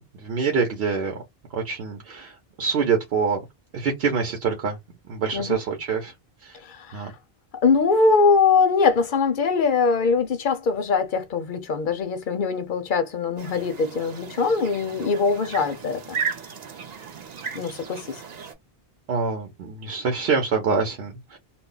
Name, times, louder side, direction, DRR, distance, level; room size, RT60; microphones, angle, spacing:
voice 1, 0.2-1.2 1.5-3.4 3.7-4.8 5.1-6.1 6.4-6.5 6.9-7.1 19.1-21.4, right 5 dB, 80° right, 0.9 m, -25 dB
voice 2, 6.7-7.1 7.6-16.0 17.6-18.1, left 4 dB, 60° left, 0.7 m, -22 dB
sound 1, 13.4-18.5, right 6 dB, 50° right, 0.6 m, -35 dB
2.3 x 2.0 x 3.7 m
omnidirectional pair, 1.0 m